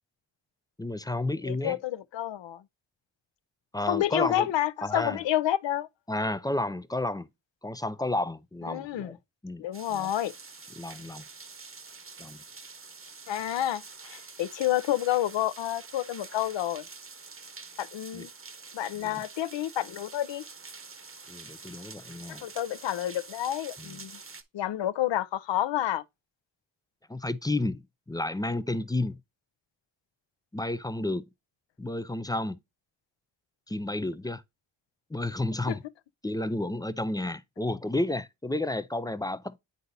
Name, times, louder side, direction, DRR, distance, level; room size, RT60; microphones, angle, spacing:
voice 1, 0.8-1.8 3.7-4.5 4.8-5.2 6.1-7.3 7.6-9.2 9.4-10.1 10.8-11.2 12.2-12.4 18.1-18.3 19.0-19.2 21.3-22.4 23.8-24.0 27.1-27.8 28.1-29.2 30.5-31.2 31.8-32.6 33.7-34.4 35.1-35.8 36.2-39.6, left 2 dB, 10° left, 0.3 m, -31 dB
voice 2, 1.5-2.6 3.9-5.9 8.7-9.1 9.6-10.3 13.3-16.8 17.8-18.3 18.7-20.4 22.3-24.1 24.5-26.0 35.7-35.8, left 12 dB, 60° left, 0.6 m, -29 dB
sound 1, 9.7-24.4, right 4 dB, 25° right, 0.9 m, -47 dB
9.5 x 3.9 x 2.6 m
cardioid pair, 60°, 50 cm